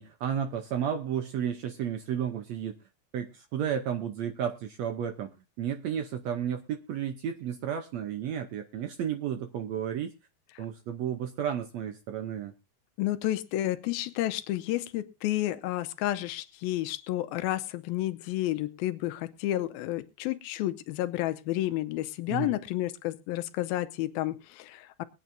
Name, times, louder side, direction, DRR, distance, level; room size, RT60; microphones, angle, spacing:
voice 1, 0.0-2.7 3.1-5.3 5.6-10.1 10.6-12.5 22.3-22.5, right 9 dB, 80° right, 7 dB, 1.5 m, -32 dB
voice 2, 13.0-25.0, left 15 dB, 85° left, 11 dB, 2.6 m, -31 dB
22.0 x 9.1 x 2.6 m, 0.29 s
omnidirectional pair, 4.2 m